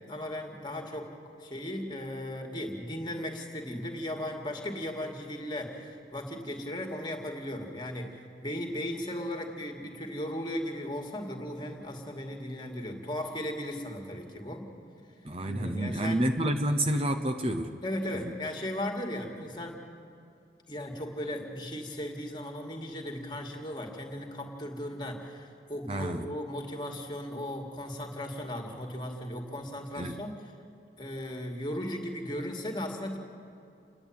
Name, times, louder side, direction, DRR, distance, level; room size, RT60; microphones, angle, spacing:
voice 1, 0.1-1.1 1.4-14.7 15.5-16.2 17.8-19.8 20.7-30.4 31.0-33.2, left 1 dB, 25° left, 2 dB, 2.3 m, -36 dB
voice 2, 15.2-17.7 18.1-18.3 25.9-26.3 29.9-30.2, right 1 dB, 35° right, 6 dB, 0.8 m, -29 dB
28.5 x 11.0 x 8.9 m, 2.5 s
head